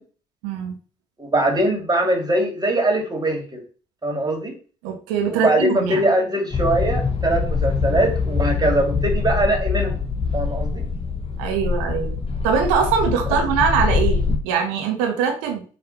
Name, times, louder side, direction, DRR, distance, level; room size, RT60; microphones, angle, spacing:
voice 1, 0.4-0.8 4.8-6.1 11.4-12.2 12.4-15.6, right 6 dB, 70° right, 4 dB, 1.4 m, -22 dB
voice 2, 1.2-3.6 4.0-4.5 5.3-10.0 10.3-10.8, right 1 dB, 20° right, 3 dB, 2.6 m, -21 dB
sound 1, 6.5-14.4, left 5 dB, 30° left, 1.3 m, -24 dB
6.9 x 3.3 x 4.5 m, 0.38 s
figure-of-eight pair, 45°, 18 cm